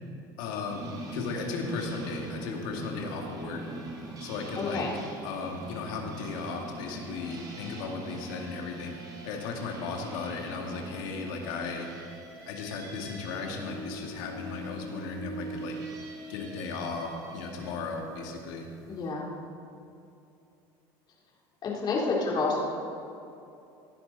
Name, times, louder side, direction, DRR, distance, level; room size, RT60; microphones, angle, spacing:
voice 1, 0.4-3.6 4.2-4.9 5.2-8.9 9.2-11.9 12.4-15.8 16.3-18.7, left 4 dB, 85° left, 1 dB, 2.3 m, -36 dB
sound 1, 0.7-17.8, right 1 dB, 35° right, 4.1 m, -42 dB
voice 2, 4.6-4.9 18.9-19.2 21.6-22.6, left 3 dB, 40° left, -3 dB, 3.7 m, -29 dB
18.0 x 12.0 x 4.1 m, 2.7 s
supercardioid pair, 110°, 11 cm